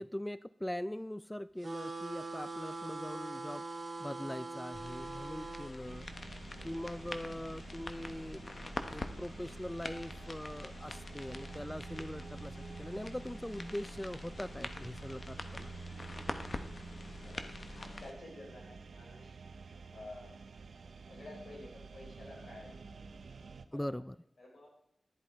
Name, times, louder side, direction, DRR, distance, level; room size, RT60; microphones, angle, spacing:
voice 1, 0.0-3.7 4.0-6.1 6.6-8.6 8.9-15.7 23.7-24.2, left 1 dB, 10° left, 16 dB, 0.3 m, -42 dB
sound 1, 1.6-5.7, right 3 dB, 55° right, 2.0 m, -42 dB
sound 2, 4.7-18.1, left 2 dB, 50° left, 1.1 m, -45 dB
sound 3, 5.8-23.7, right 4 dB, 80° right, 0.6 m, -49 dB
voice 2, 17.8-19.4 19.9-20.3 21.1-23.0 23.7-23.9 24.4-24.7, left 2 dB, 75° left, -2 dB, 5.6 m, -51 dB
11.0 x 10.5 x 4.4 m, 0.79 s
cardioid pair, 50°, 0 cm